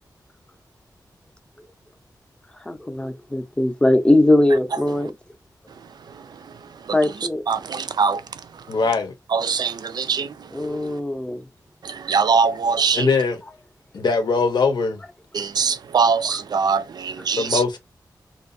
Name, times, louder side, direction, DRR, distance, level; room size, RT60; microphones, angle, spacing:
voice 1, 2.7-5.1 6.9-7.4 10.5-11.4, left 1 dB, 15° left, 0.5 m, -20 dB
voice 2, 6.1-8.7 9.3-10.9 11.8-13.1 15.3-17.6, right 5 dB, 70° right, 0.3 m, -23 dB
voice 3, 8.7-9.1 12.9-13.4 13.9-15.0 17.4-17.8, left 4 dB, 75° left, 0.8 m, -21 dB
2.6 x 2.3 x 2.6 m
wide cardioid pair, 115°, 7 cm